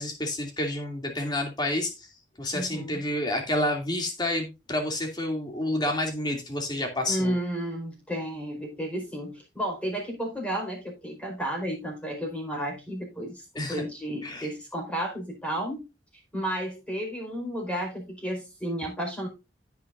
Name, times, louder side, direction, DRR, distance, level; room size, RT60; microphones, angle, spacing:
voice 1, 0.0-2.1 2.4-7.3 13.6-13.8 14.2-14.5, left 1 dB, 25° left, 2.6 m, -29 dB
voice 2, 2.5-3.0 7.1-15.8 16.3-19.3, right 1 dB, 5° left, 4.6 m, -32 dB
16.0 x 5.9 x 2.6 m
head